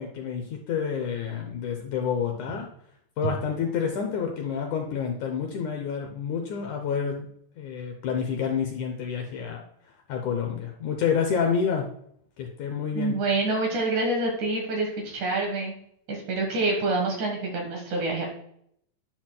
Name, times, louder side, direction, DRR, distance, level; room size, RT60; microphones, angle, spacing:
voice 1, 0.0-2.7 3.2-7.3 7.6-9.6 10.1-11.9 12.4-13.2, left 7 dB, 75° left, 3 dB, 2.0 m, -28 dB
voice 2, 12.9-15.8 16.1-18.3, right 2 dB, 65° right, 1 dB, 2.7 m, -27 dB
10.5 x 5.9 x 2.2 m, 0.68 s
omnidirectional pair, 3.9 m